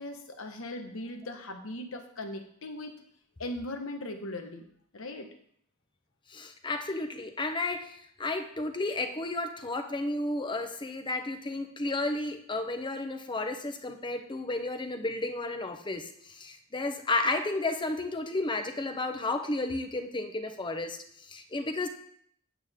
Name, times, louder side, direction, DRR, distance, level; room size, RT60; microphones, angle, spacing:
voice 1, 0.0-2.9 3.4-4.6 4.9-5.3, left 1 dB, 70° left, 5 dB, 1.3 m, -39 dB
voice 2, 6.3-21.9, left 2 dB, 25° left, 6 dB, 0.8 m, -32 dB
8.8 x 8.4 x 3.7 m, 0.66 s
head